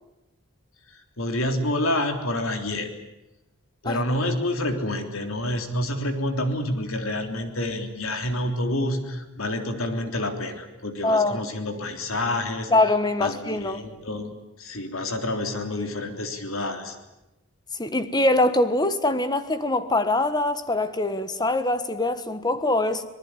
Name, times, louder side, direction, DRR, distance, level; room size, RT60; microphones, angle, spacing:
voice 1, 0.9-2.9 3.8-12.7 13.2-14.3 14.6-17.0, left 1 dB, 75° left, 3.6 m, -28 dB
voice 2, 11.0-11.5 12.7-13.8 15.8-15.9 17.8-23.0, left 2 dB, 20° left, 1.5 m, -23 dB
25.5 x 19.5 x 9.9 m
head